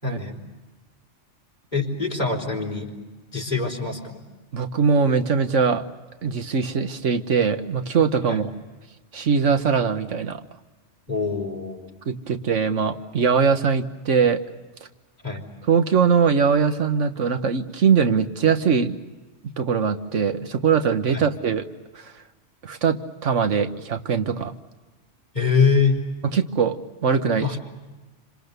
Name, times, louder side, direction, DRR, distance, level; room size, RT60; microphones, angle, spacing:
voice 1, 0.0-0.4 1.7-2.9 3.3-4.2 8.3-8.4 11.1-11.9 15.2-15.5 21.1-21.3 25.3-26.0 27.4-27.6, left 5 dB, 40° left, 0 dB, 4.3 m, -24 dB
voice 2, 4.5-5.8 6.2-8.4 9.1-10.4 12.1-14.4 15.7-19.0 19.6-21.6 22.6-24.5 26.3-26.8 27.0-27.5, right 6 dB, 90° right, 8 dB, 1.6 m, -21 dB
28.5 x 26.5 x 6.8 m, 1.2 s
omnidirectional pair, 1.2 m